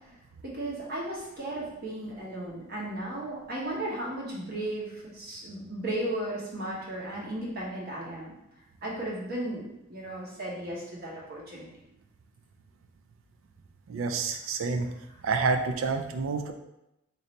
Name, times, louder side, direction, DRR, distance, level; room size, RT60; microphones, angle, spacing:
voice 1, 0.4-8.3 8.8-11.7, right 1 dB, 50° right, -4 dB, 1.1 m, -35 dB
voice 2, 13.9-14.9 15.2-16.5, right 4 dB, 75° right, 6 dB, 0.4 m, -28 dB
3.1 x 2.7 x 4.0 m, 0.89 s
head